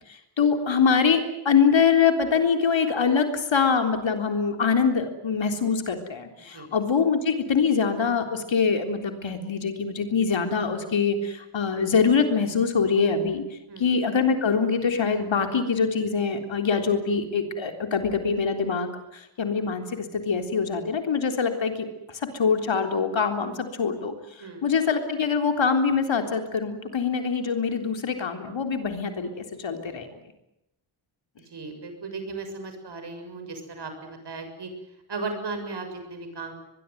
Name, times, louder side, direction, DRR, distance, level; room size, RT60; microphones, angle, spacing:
voice 1, 0.4-13.4 13.8-29.3 29.6-30.1, left 5 dB, 70° left, 6 dB, 3.8 m, -24 dB
voice 2, 31.5-34.7 35.1-36.5, right 3 dB, 55° right, 6 dB, 7.0 m, -36 dB
23.0 x 22.5 x 9.4 m, 0.85 s
wide cardioid pair, 145°, 48 cm